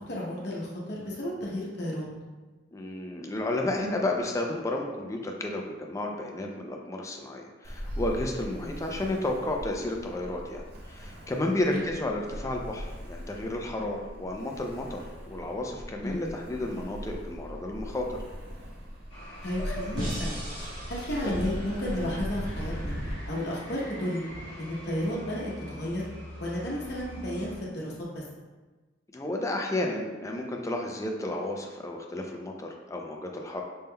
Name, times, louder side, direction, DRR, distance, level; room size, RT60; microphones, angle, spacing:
voice 1, 0.0-2.1 8.5-8.8 11.7-11.9 16.0-16.3 19.4-20.4 20.9-22.9 23.3-24.3 24.6-26.1 26.4-28.3, left 1 dB, 60° left, -4 dB, 0.8 m, -33 dB
voice 2, 2.7-18.2 21.2-21.3 29.1-33.6, left 1 dB, 15° left, 1 dB, 0.4 m, -32 dB
Ocean, 7.6-23.1, equal, 55° right, 0.7 m, -39 dB
sound 1, 19.1-27.6, equal, 30° left, 1.1 m, -43 dB
sound 2, 20.0-23.1, equal, 80° right, 1.5 m, -40 dB
5.3 x 3.5 x 2.2 m, 1.2 s
head